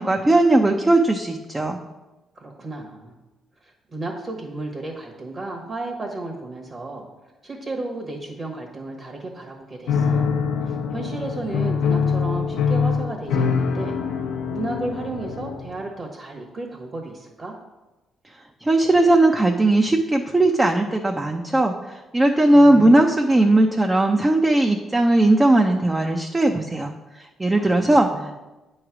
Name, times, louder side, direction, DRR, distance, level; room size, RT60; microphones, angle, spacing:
voice 1, 0.0-1.8 18.6-28.4, right 2 dB, 15° right, 3 dB, 0.6 m, -18 dB
voice 2, 2.3-3.1 3.6-7.1 7.4-10.3 10.6-13.9 14.5-17.5 22.5-23.0 27.5-28.3, right 2 dB, 40° right, 0 dB, 1.2 m, -33 dB
Piano, 9.9-15.8, left 5 dB, 90° left, 0.7 m, -24 dB
8.9 x 3.2 x 6.0 m, 1.1 s
cardioid pair, 90°, 0 cm